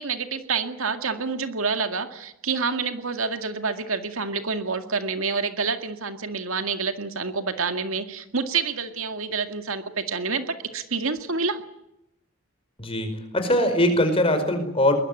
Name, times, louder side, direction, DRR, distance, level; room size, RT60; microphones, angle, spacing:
voice 1, 0.0-11.6, right 4 dB, 75° right, 7 dB, 2.0 m, -28 dB
voice 2, 12.8-14.9, left 1 dB, 25° left, 7 dB, 5.1 m, -22 dB
22.5 x 21.0 x 9.6 m, 0.84 s
head